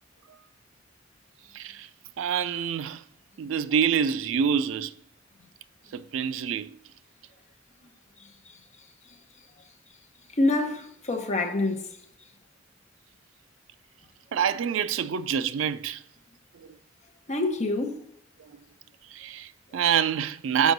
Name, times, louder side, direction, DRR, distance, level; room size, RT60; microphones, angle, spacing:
voice 1, 1.5-1.9 2.2-3.0 3.4-4.9 5.9-6.7 14.3-16.0 16.5-16.7 18.4-18.5 19.1-20.7, right 8 dB, 75° right, 0.4 m, -26 dB
voice 2, 10.3-11.8 17.3-18.0, left 2 dB, 35° left, 0.9 m, -26 dB
6.2 x 5.1 x 3.9 m
head